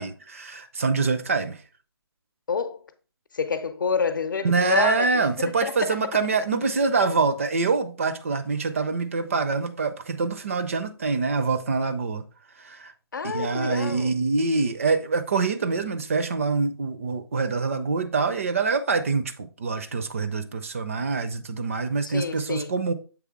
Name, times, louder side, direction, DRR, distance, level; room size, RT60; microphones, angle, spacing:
voice 1, 0.0-1.6 4.4-12.2 12.6-12.9 13.2-22.9, right 4 dB, 30° right, 0.4 m, -25 dB
voice 2, 2.5-2.8 3.3-6.2 13.1-14.2 22.0-22.7, left 5 dB, 50° left, 0.7 m, -28 dB
7.3 x 3.3 x 4.6 m
figure-of-eight pair, 145°, 14 cm